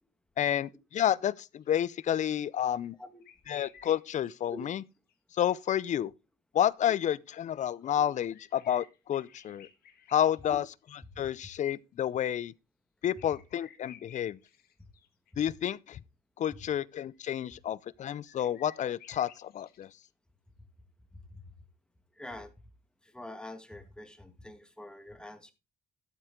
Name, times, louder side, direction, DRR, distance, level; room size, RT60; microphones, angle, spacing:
voice 1, 0.4-3.0 3.5-4.8 5.3-6.1 6.5-9.7 10.1-10.7 11.2-12.5 13.0-14.4 15.4-16.0 16.4-19.9, left 10 dB, 45° left, 0.6 m, -30 dB
sound 1, 1.6-1.7 3.2-4.3 4.6-4.7 5.1-5.2 5.6-5.7 7.9-10.5 10.8-10.9 13.0-15.3 17.1-17.3 18.1-20.0, left 9 dB, 65° left, 1.7 m, -56 dB
voice 2, 22.2-22.5 23.0-25.5, left 1 dB, 5° left, 1.8 m, -45 dB
13.0 x 7.8 x 3.8 m
cardioid pair, 110°, 17 cm